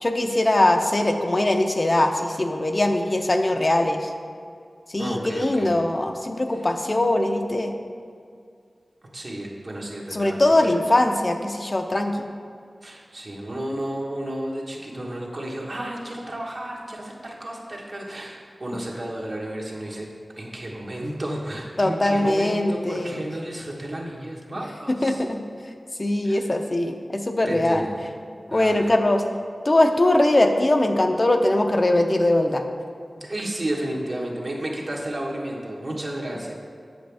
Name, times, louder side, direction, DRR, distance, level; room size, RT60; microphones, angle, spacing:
voice 1, 0.0-4.1 4.9-7.7 10.1-12.2 21.8-23.2 24.9-25.4 26.0-27.9 28.5-29.2 29.7-32.6, left 1 dB, 45° left, 4 dB, 0.6 m, -21 dB
voice 2, 5.0-5.7 9.1-10.7 12.8-20.1 20.4-25.2 26.2-26.4 27.4-28.0 28.5-28.9 33.1-36.5, right 1 dB, 60° right, -3 dB, 1.3 m, -32 dB
7.8 x 7.0 x 3.4 m, 2.3 s
wide cardioid pair, 50°, 0 cm